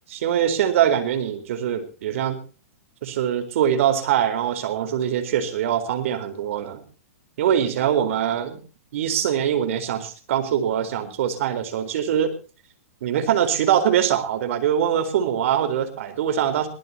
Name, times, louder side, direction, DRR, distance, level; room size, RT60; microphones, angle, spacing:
voice 1, 0.1-2.4 3.0-6.8 7.4-8.6 8.9-12.3 13.0-16.7, right 9 dB, 60° right, 9 dB, 4.2 m, -23 dB
22.0 x 19.0 x 2.8 m, 0.36 s
hypercardioid pair, 120°, 8 cm